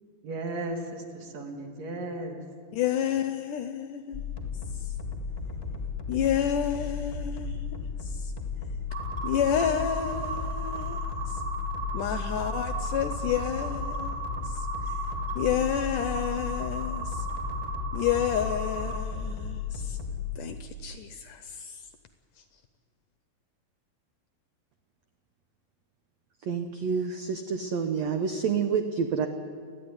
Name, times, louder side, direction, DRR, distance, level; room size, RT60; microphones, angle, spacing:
voice 1, 0.2-2.4, right 2 dB, 50° right, 4 dB, 2.9 m, -35 dB
voice 2, 2.7-4.3 4.8-4.9 6.1-7.6 8.0-8.3 9.2-11.0 11.3-11.4 11.9-14.7 15.4-17.3 17.9-20.0 20.4-21.8, left 9 dB, 75° left, 10 dB, 2.0 m, -30 dB
sound 1, 4.1-20.4, left 5 dB, 25° left, 1.3 m, -34 dB
sound 2, 8.9-19.0, right 4 dB, 30° right, 2.9 m, -36 dB
voice 3, 26.4-29.3, right 6 dB, 75° right, 7 dB, 1.5 m, -28 dB
29.5 x 11.5 x 9.7 m, 2.2 s
omnidirectional pair, 4.4 m